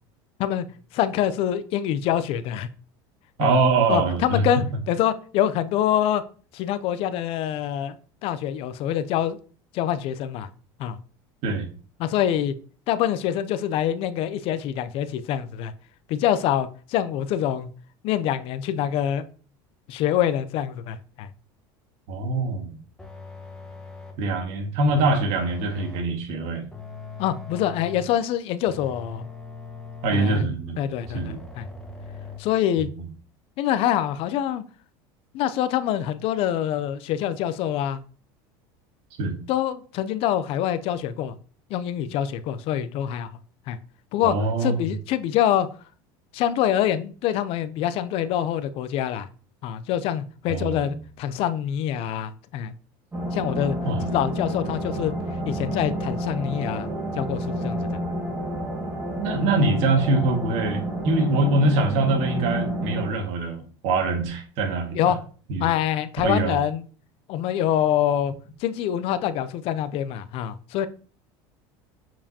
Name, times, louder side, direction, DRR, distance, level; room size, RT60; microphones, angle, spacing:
voice 1, 0.9-2.7 3.4-3.6 3.9-6.2 6.5-8.0 8.2-9.4 9.7-10.5 10.8-11.0 12.0-12.5 12.9-15.7 16.1-17.7 18.0-19.2 19.9-21.3 27.2-29.2 30.1-30.4 30.8-31.7 32.4-32.9 33.6-34.6 35.3-38.0 39.5-41.4 41.7-43.3 43.7-43.8 44.1-44.4 44.6-45.7 46.3-49.3 49.6-52.7 53.3-53.8 54.0-55.1 55.4-56.9 57.1-57.9 65.0-65.2 65.6-66.8 67.3-68.3 68.6-70.9, left 11 dB, 55° left, 0.5 m, -25 dB
voice 2, 3.4-4.4 11.4-11.7 22.1-22.8 24.2-26.7 30.0-30.8 31.1-31.4 33.0-33.1 39.2-39.4 44.2-44.9 50.5-51.0 53.8-54.1 59.2-65.2 65.5-65.7 66.2-66.6, right 3 dB, 65° right, 1.8 m, -24 dB
sound 1, 23.0-24.3 24.9-26.2 26.7-28.2 28.7-30.6 31.0-32.4, left 5 dB, 5° left, 1.4 m, -40 dB
sound 2, 53.1-63.1, equal, 15° right, 1.6 m, -30 dB
7.3 x 4.8 x 2.8 m
supercardioid pair, 120°, 11 cm